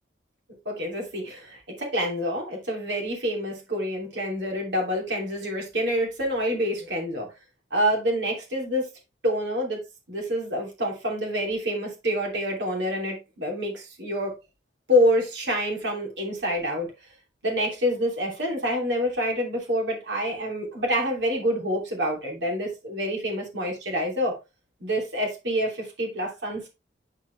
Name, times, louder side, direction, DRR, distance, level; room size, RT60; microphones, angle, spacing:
voice 1, 0.6-7.3 7.7-8.9 9.2-9.8 10.1-14.3 14.9-16.9 17.4-24.3 24.8-26.7, equal, 75° right, 2.9 m, -27 dB
9.6 x 4.5 x 3.3 m
head